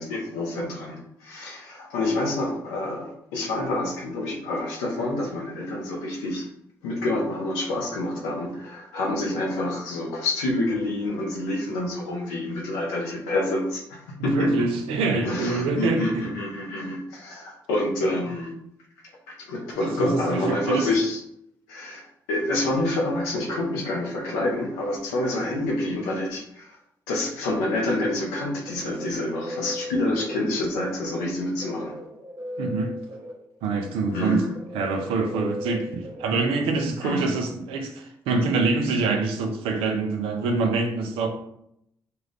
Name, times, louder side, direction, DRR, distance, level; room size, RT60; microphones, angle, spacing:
voice 1, 0.0-6.5 6.8-14.5 15.2-18.5 19.4-21.2 21.7-26.8 27.1-31.9 34.1-34.5 37.0-37.2, left 1 dB, 90° left, -1 dB, 0.9 m, -27 dB
voice 2, 14.2-16.2 19.8-20.9 32.6-32.9 33.6-34.4 34.7-41.3, right 3 dB, 80° right, 4 dB, 0.6 m, -25 dB
sound 1, 28.3-37.0, left 1 dB, 45° right, 1.0 m, -39 dB
4.6 x 2.5 x 3.3 m, 0.75 s
hypercardioid pair, 45°, 9 cm